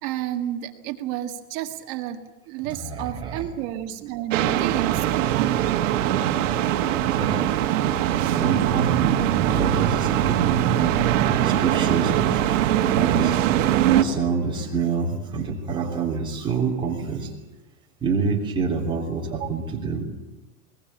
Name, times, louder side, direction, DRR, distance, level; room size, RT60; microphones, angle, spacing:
voice 1, 0.0-5.7 15.9-16.0 19.3-19.5, right 12 dB, 35° right, 5 dB, 1.7 m, -31 dB
voice 2, 2.6-3.5 6.9-7.6 8.3-11.0 11.4-13.4 14.0-17.3 18.0-20.0, right 5 dB, 10° right, -2 dB, 3.3 m, -27 dB
sound 1, 4.3-14.0, right 11 dB, 60° right, 1.8 m, -21 dB
21.0 x 19.5 x 9.1 m, 1.1 s
supercardioid pair, 180°, 42 cm